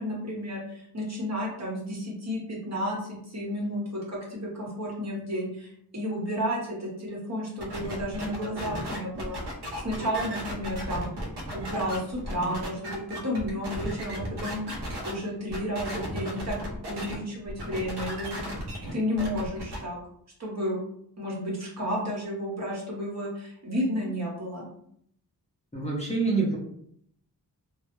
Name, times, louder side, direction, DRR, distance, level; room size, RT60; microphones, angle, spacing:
voice 1, 0.0-9.4 9.8-11.2 11.5-14.6 15.0-18.4 18.9-20.0 20.4-20.8 21.2-24.7, equal, 40° right, -3 dB, 1.0 m, -32 dB
sound 1, 7.6-15.1 15.5-17.1 17.5-19.8, equal, 75° right, 0.7 m, -35 dB
voice 2, 25.7-26.6, right 4 dB, 15° left, -4 dB, 0.6 m, -26 dB
2.2 x 2.0 x 3.0 m, 0.69 s
cardioid pair, 65°, 40 cm